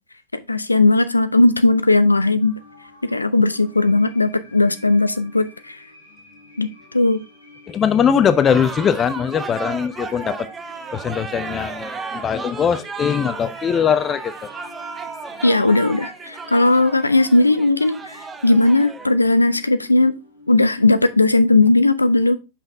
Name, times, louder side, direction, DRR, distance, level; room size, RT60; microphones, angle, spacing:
voice 1, 0.3-2.5 3.0-5.8 6.6-7.2 15.4-20.2 20.5-22.4, left 2 dB, 80° left, 0.4 m, -17 dB
sound 1, 2.4-21.8, left 2 dB, 90° right, 2.1 m, -48 dB
voice 2, 7.7-10.4 10.9-14.5, left 7 dB, 25° left, 0.6 m, -20 dB
sound 2, 8.4-19.1, right 4 dB, 15° right, 0.7 m, -34 dB
5.8 x 5.5 x 3.5 m
figure-of-eight pair, 90°, 0 cm